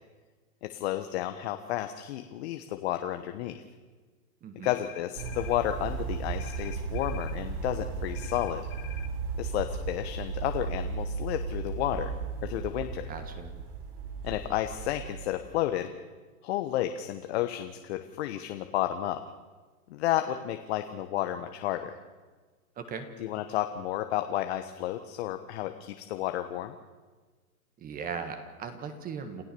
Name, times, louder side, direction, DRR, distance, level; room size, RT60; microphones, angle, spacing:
voice 1, 0.6-3.6 4.6-8.7 9.4-12.1 12.4-13.1 14.2-15.9 16.4-19.2 19.9-22.0 23.2-26.8, left 13 dB, 45° left, 7 dB, 1.3 m, -32 dB
voice 2, 4.4-4.7 13.1-13.5 22.8-23.1 27.8-29.4, right 6 dB, 20° right, 8 dB, 1.6 m, -38 dB
sound 1, 4.6-5.6 6.4-7.4 8.1-9.1, left 12 dB, 25° left, 1.3 m, -47 dB
sound 2, 5.2-15.3, right 5 dB, 55° right, 7.9 m, -35 dB
28.5 x 13.5 x 6.9 m, 1.4 s
hypercardioid pair, 140°, 44 cm